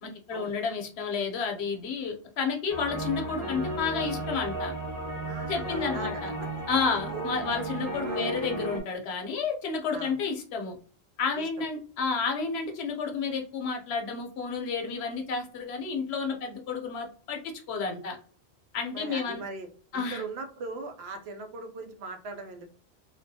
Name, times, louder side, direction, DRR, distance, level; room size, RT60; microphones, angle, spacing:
voice 1, 0.0-4.7 5.5-6.3 6.7-10.8 11.2-17.4 17.7-18.2 18.7-19.4 19.9-20.2, left 5 dB, 80° left, 3 dB, 0.9 m, -31 dB
sound 1, 2.7-8.8, right 1 dB, 15° right, 1.0 m, -34 dB
voice 2, 5.2-6.1 6.4-6.5 7.1-7.2 8.0-8.3 9.9-10.1 11.4-11.5 18.9-19.7 19.9-22.7, right 3 dB, 80° right, 5 dB, 0.8 m, -39 dB
2.3 x 2.1 x 2.6 m, 0.41 s
omnidirectional pair, 1.1 m